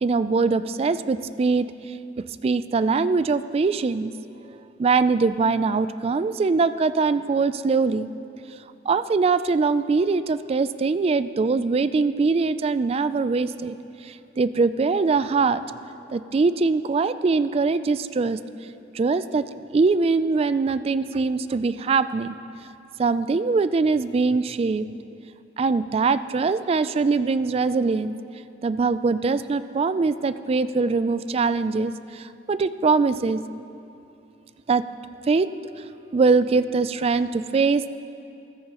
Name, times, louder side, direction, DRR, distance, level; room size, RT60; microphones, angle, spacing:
voice 1, 0.0-4.1 4.5-8.1 8.9-13.8 14.0-15.6 16.1-18.4 18.9-19.4 19.7-22.4 23.0-24.9 25.6-28.1 28.6-33.4 34.7-34.8 35.3-35.5 35.8-35.9 36.1-37.9, right 4 dB, 35° right, 13 dB, 0.3 m, -22 dB
14.0 x 14.0 x 3.0 m, 2.6 s
head